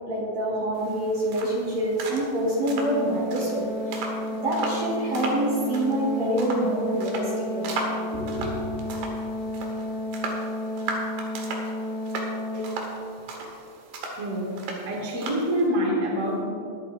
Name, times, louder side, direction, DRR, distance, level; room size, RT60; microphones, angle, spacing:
voice 1, 0.0-4.1 4.4-7.8 8.1-8.5, right 1 dB, 45° right, -6 dB, 3.2 m, -26 dB
sound 1, 0.8-15.7, right 2 dB, 90° right, 3.7 m, -37 dB
Organ, 2.4-13.3, left 1 dB, 80° left, 1.9 m, -32 dB
voice 2, 14.1-14.5 14.8-16.4, equal, 25° right, -5 dB, 2.2 m, -26 dB
22.5 x 9.0 x 2.8 m, 2.6 s
omnidirectional pair, 4.7 m